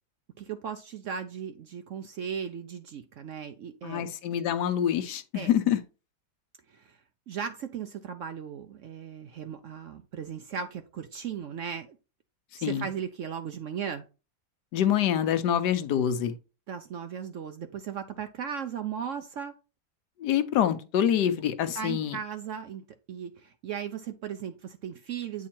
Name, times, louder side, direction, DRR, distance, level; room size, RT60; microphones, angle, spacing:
voice 1, 0.4-4.1 5.3-5.5 6.7-7.0 7.3-12.0 12.6-14.1 16.7-19.5 21.7-25.5, right 7 dB, 65° right, 0.8 m, -37 dB
voice 2, 3.8-5.8 12.6-12.9 14.7-16.3 20.2-22.2, left 10 dB, 80° left, 1.3 m, -26 dB
8.5 x 3.6 x 4.3 m
omnidirectional pair, 1.8 m